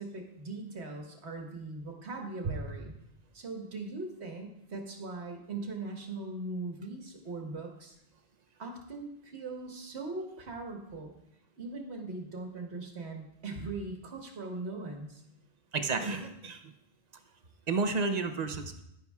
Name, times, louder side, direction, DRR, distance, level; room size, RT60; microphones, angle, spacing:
voice 1, 0.0-3.0 3.3-8.0 8.6-11.1 11.6-15.2, right 3 dB, 75° right, 2 dB, 1.6 m, -40 dB
voice 2, 15.7-16.7 17.7-18.8, right 4 dB, 45° right, 7 dB, 0.7 m, -31 dB
10.5 x 9.7 x 2.3 m, 0.79 s
omnidirectional pair, 1.1 m